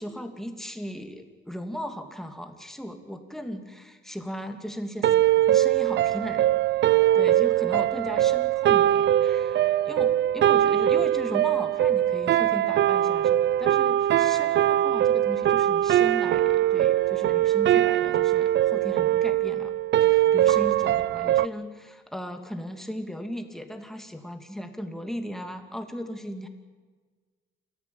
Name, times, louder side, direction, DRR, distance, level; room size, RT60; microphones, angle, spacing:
voice 1, 0.0-5.2 5.5-6.5 7.1-19.7 20.0-26.5, equal, ahead, 6 dB, 2.7 m, -37 dB
sound 1, 5.0-21.5, right 12 dB, 65° right, 0.6 m, -22 dB
29.0 x 14.0 x 9.1 m, 1.4 s
cardioid pair, 90°, 20 cm